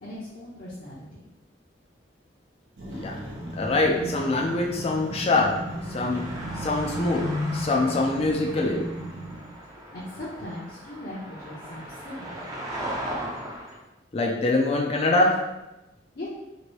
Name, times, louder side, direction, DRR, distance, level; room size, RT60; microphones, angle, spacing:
voice 1, 0.0-1.0 9.9-12.4 16.1-16.3, left 1 dB, 55° left, -8 dB, 0.8 m, -39 dB
sound 1, 2.8-9.5, right 1 dB, 85° right, 0.9 m, -36 dB
sound 2, 2.9-13.8, right 1 dB, 20° right, 0.5 m, -39 dB
voice 2, 3.6-5.5 5.9-6.2 6.6-8.8 14.1-15.3, left 2 dB, 35° left, -1 dB, 0.4 m, -24 dB
2.9 x 2.6 x 3.0 m, 0.96 s
head